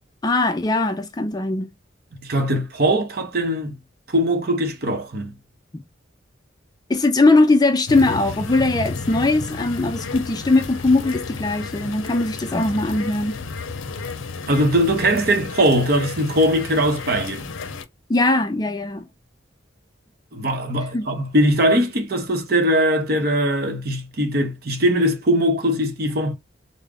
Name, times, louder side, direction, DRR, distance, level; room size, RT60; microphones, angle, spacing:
voice 1, 0.2-1.7 5.7-5.8 6.9-13.4 18.1-19.1 20.9-21.1, left 2 dB, 20° left, 0.3 m, -20 dB
voice 2, 2.2-3.7 4.1-5.3 14.5-17.5 20.3-26.3, equal, 50° right, 0.8 m, -20 dB
sound 1, 7.9-17.9, left 4 dB, 85° left, 0.5 m, -32 dB
3.5 x 2.1 x 3.5 m
head